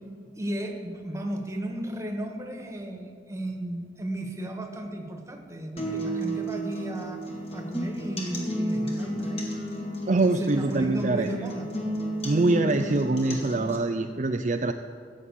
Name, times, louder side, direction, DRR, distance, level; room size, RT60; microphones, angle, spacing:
voice 1, 0.4-7.2 7.5-9.5 10.4-11.7, right 1 dB, 15° right, 3 dB, 1.5 m, -34 dB
sound 1, 5.8-13.8, equal, 35° left, 2.0 m, -32 dB
voice 2, 10.1-11.3 12.2-14.7, right 2 dB, 40° right, 5 dB, 0.5 m, -24 dB
15.5 x 7.4 x 8.5 m, 2.3 s
head